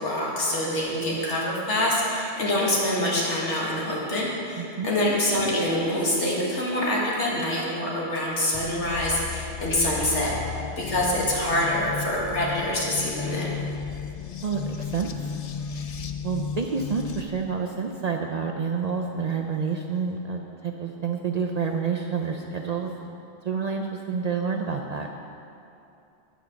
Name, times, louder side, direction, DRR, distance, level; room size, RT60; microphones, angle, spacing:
voice 1, 0.0-10.3 10.8-13.5, left 1 dB, 90° left, -4 dB, 2.0 m, -25 dB
voice 2, 4.6-4.9 14.4-15.3 16.2-23.1 23.4-25.1, right 5 dB, 55° right, 2 dB, 0.4 m, -29 dB
sound 1, 8.5-17.2, left 7 dB, 60° left, 0.4 m, -34 dB
9.4 x 5.0 x 6.8 m, 2.7 s
omnidirectional pair, 1.2 m